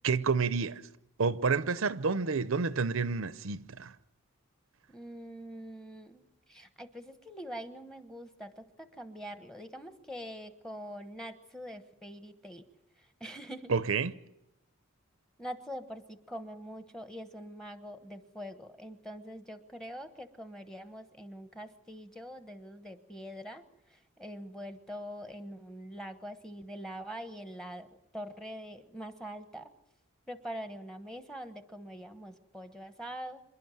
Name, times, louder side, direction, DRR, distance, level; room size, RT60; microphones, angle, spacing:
voice 1, 0.0-0.8 1.2-3.9 13.7-14.1, right 5 dB, 75° right, 0.7 m, -29 dB
voice 2, 4.9-12.6 13.2-13.7 15.4-23.6 23.9-27.9 28.1-29.7 30.3-33.4, equal, 5° left, 1.1 m, -44 dB
27.0 x 11.5 x 9.2 m
head